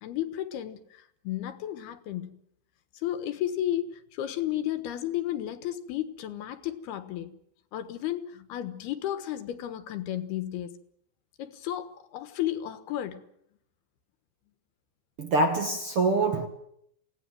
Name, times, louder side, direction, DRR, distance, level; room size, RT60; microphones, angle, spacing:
voice 1, 0.0-2.4 2.9-7.3 7.7-10.7 11.4-13.2, left 12 dB, 80° left, 3.4 m, -33 dB
voice 2, 15.2-16.5, right 2 dB, 55° right, 1.7 m, -25 dB
27.0 x 18.0 x 7.7 m
omnidirectional pair, 4.5 m